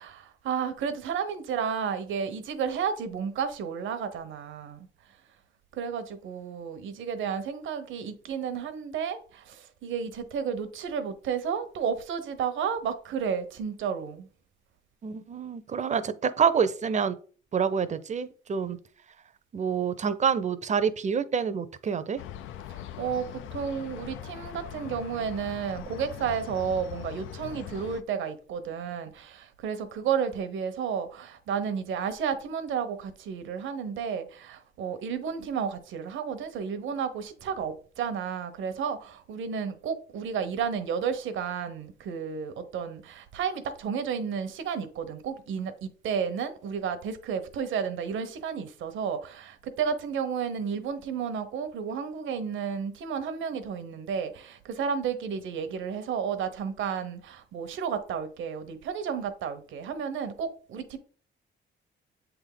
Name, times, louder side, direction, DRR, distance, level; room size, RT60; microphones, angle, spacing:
voice 1, 0.0-4.9 5.7-14.3 23.0-23.3 23.5-61.0, right 7 dB, 75° right, 0.9 m, -32 dB
voice 2, 15.0-17.2 17.5-18.8 19.5-22.2, right 6 dB, 35° right, 0.6 m, -27 dB
sound 1, 22.2-28.0, left 10 dB, 85° left, 0.5 m, -41 dB
7.8 x 3.5 x 3.8 m
cardioid pair, 90°, 20 cm